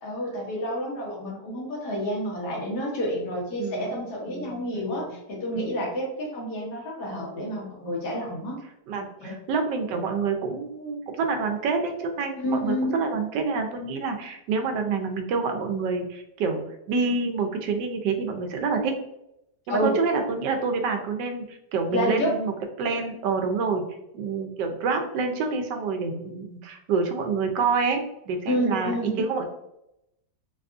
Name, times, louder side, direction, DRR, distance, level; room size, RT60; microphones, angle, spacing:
voice 1, 0.0-8.6 9.2-9.4 12.4-13.0 19.7-19.9 21.9-22.3 28.5-29.2, equal, 75° left, -3 dB, 1.6 m, -29 dB
voice 2, 3.6-3.9 4.3-5.1 5.5-5.9 8.2-8.3 8.9-16.6 16.9-19.0 19.7-22.5 22.8-23.8 24.1-29.4, right 4 dB, 85° right, 5 dB, 1.2 m, -27 dB
4.1 x 2.3 x 2.4 m, 0.83 s
omnidirectional pair, 1.8 m